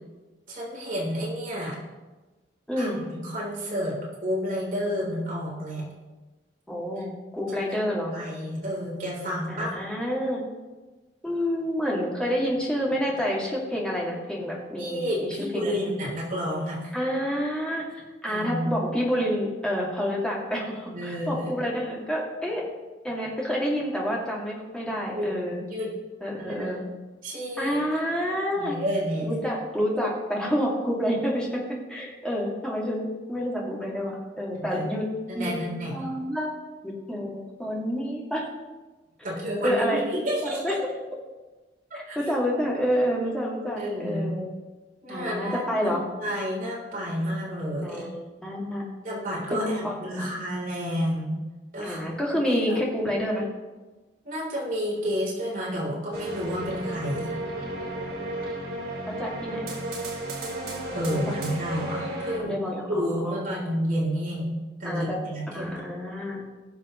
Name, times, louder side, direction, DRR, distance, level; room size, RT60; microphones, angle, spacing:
voice 1, 0.5-1.8 2.8-5.9 7.7-7.8 8.1-9.8 14.8-16.9 18.3-18.8 20.9-21.5 25.1-25.3 25.6-25.9 26.4-26.7 27.2-28.0 28.6-29.4 34.5-34.9 35.3-35.9 39.2-40.8 41.9-42.2 43.8-44.3 45.0-48.1 49.0-51.4 51.7-52.0 52.3-52.8 54.2-57.4 60.9-62.6 62.9-65.8, equal, 50° right, -5 dB, 3.9 m, -30 dB
voice 2, 2.7-3.0 6.7-8.1 9.5-10.4 11.2-15.8 16.9-22.7 23.0-25.6 26.2-26.8 27.6-28.7 29.2-35.1 35.3-35.6 35.9-36.5 36.8-38.5 39.6-40.0 40.4-40.8 41.9-44.4 45.1-46.0 47.8-48.9 49.5-50.3 51.8-53.4 59.2-59.7 61.1-61.3 62.4-63.4 64.8-65.2 65.5-66.4, equal, 5° left, -4 dB, 2.6 m, -28 dB
sound 1, 56.1-62.4, right 1 dB, 65° right, 3.5 m, -33 dB
20.0 x 7.2 x 3.2 m, 1.2 s
head